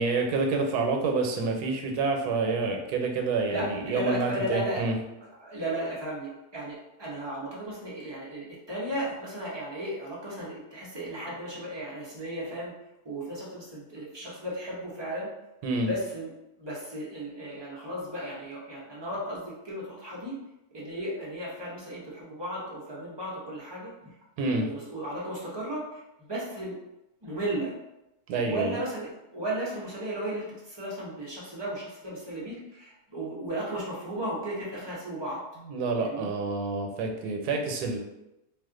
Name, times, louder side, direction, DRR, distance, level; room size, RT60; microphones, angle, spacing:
voice 1, 0.0-5.0 15.6-15.9 24.4-24.7 28.3-28.7 35.7-38.0, right 3 dB, 85° right, 3 dB, 1.1 m, -28 dB
voice 2, 3.5-4.8 5.4-12.7 13.0-15.3 15.9-16.3 16.6-20.4 20.7-23.9 24.4-26.0 26.3-26.8 27.2-27.7 28.4-35.4 36.0-36.3, right 1 dB, 30° right, -6 dB, 0.5 m, -35 dB
2.5 x 2.4 x 3.6 m, 0.92 s
omnidirectional pair, 1.6 m